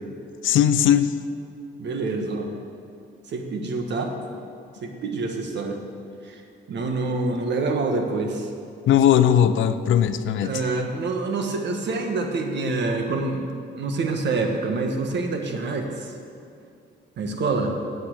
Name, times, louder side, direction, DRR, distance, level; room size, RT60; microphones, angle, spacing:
voice 1, 0.4-1.1 8.9-10.6, left 10 dB, 75° left, 11 dB, 0.6 m, -18 dB
voice 2, 1.8-2.5 3.3-4.1 4.8-5.8 6.2-6.4 6.7-8.5 10.4-16.2 17.2-17.7, right 3 dB, 60° right, 4 dB, 1.5 m, -26 dB
8.7 x 7.3 x 8.3 m, 2.4 s
cardioid pair, 90°, 20 cm